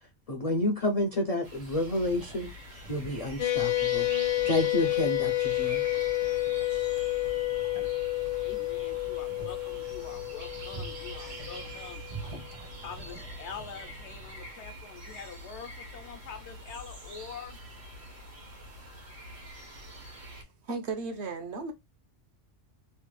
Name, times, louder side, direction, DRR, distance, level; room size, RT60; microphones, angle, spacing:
voice 1, 0.3-2.5 2.9-5.8, left 1 dB, 50° left, 0.4 m, -30 dB
sound 1, 1.4-20.4, equal, 85° right, 1.5 m, -45 dB
sound 2, 1.8-14.3, right 2 dB, 35° right, 0.6 m, -48 dB
sound 3, 3.4-12.1, left 16 dB, 85° left, 1.1 m, -30 dB
voice 2, 8.3-12.0 12.5-17.6, left 6 dB, 70° left, 0.9 m, -45 dB
voice 3, 20.6-21.7, right 4 dB, 65° right, 1.0 m, -35 dB
3.2 x 2.2 x 3.1 m
omnidirectional pair, 1.3 m